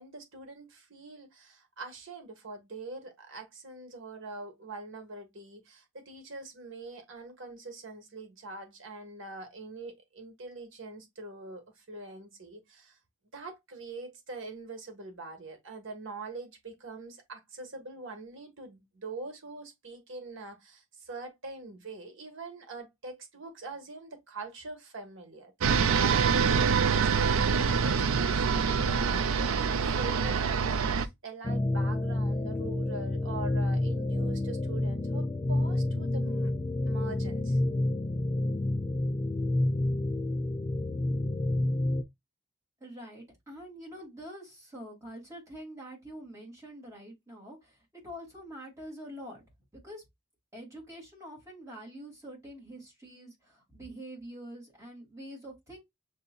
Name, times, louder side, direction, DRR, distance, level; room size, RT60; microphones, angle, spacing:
voice 1, 0.0-13.0 13.3-36.5 36.8-37.6, right 3 dB, 60° right, 1.4 m, -43 dB
sound 1, 25.6-31.1, right 6 dB, 80° right, 0.5 m, -25 dB
sound 2, 31.4-42.0, left 1 dB, 20° left, 0.3 m, -29 dB
voice 2, 42.8-47.8 48.0-49.4 49.7-50.0 50.5-55.8, equal, 15° right, 2.3 m, -45 dB
6.6 x 2.8 x 2.2 m
head